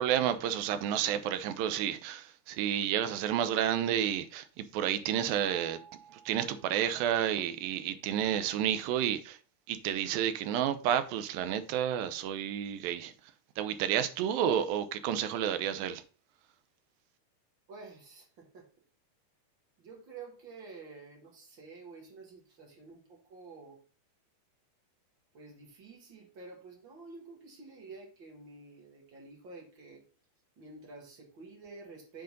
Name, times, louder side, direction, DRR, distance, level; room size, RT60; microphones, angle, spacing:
voice 1, 0.0-5.8 6.1-9.4 9.7-13.1 13.6-16.0, right 10 dB, 80° right, 2.3 m, -30 dB
Mallet percussion, 5.4-7.4, right 5 dB, 70° left, 2.9 m, -55 dB
voice 2, 17.7-18.7 19.8-23.8 25.3-30.0 30.6-32.2, right 3 dB, 45° right, 1.7 m, -50 dB
7.9 x 3.9 x 5.1 m
omnidirectional pair, 4.4 m